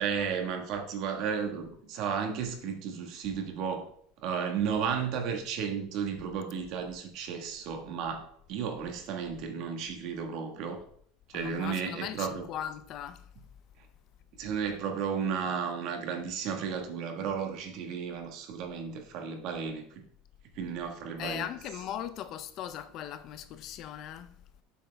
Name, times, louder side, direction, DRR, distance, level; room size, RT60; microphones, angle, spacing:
voice 1, 0.0-3.9 4.2-10.8 11.3-12.5 14.4-20.0 20.5-21.5, right 6 dB, 50° right, 1.4 m, -33 dB
voice 2, 11.3-13.2 21.2-24.3, left 10 dB, 40° left, 0.5 m, -39 dB
7.2 x 6.7 x 3.4 m
supercardioid pair, 155°, 0 cm